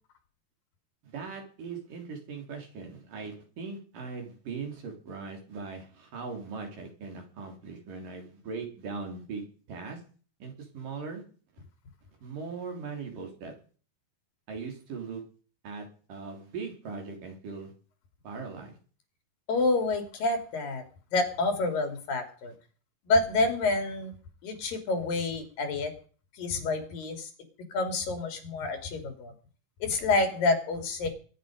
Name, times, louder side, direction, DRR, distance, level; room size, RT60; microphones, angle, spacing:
voice 1, 1.0-10.0 10.4-11.2 12.2-13.5 14.5-15.2 15.6-17.7 18.2-18.8, right 4 dB, 75° right, 3 dB, 5.1 m, -39 dB
voice 2, 19.5-20.8 21.1-22.5 23.1-24.1 24.4-25.9 26.4-27.3 27.7-29.3 29.8-31.1, left 3 dB, 85° left, 6 dB, 4.5 m, -28 dB
22.0 x 10.0 x 5.2 m, 0.41 s
omnidirectional pair, 3.9 m